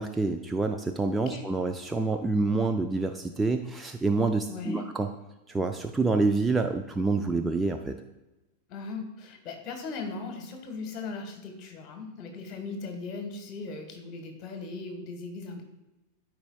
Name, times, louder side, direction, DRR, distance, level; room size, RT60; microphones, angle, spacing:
voice 1, 0.0-5.1 5.5-8.0, right 3 dB, 10° right, 5 dB, 0.4 m, -27 dB
voice 2, 4.5-4.9 8.7-15.6, left 4 dB, 35° left, 4 dB, 1.4 m, -38 dB
12.5 x 4.6 x 2.3 m, 1.0 s
figure-of-eight pair, 90°, 0 cm